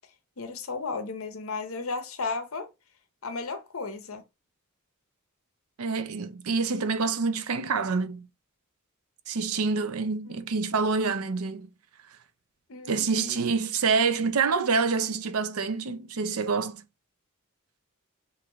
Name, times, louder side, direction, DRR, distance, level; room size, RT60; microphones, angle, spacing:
voice 1, 0.4-2.7 3.2-4.2 10.2-10.4 12.7-13.4, left 4 dB, 70° left, 0.9 m, -34 dB
voice 2, 5.8-8.3 9.3-11.7 12.9-16.8, right 4 dB, 90° right, 0.6 m, -27 dB
5.8 x 2.6 x 3.2 m
head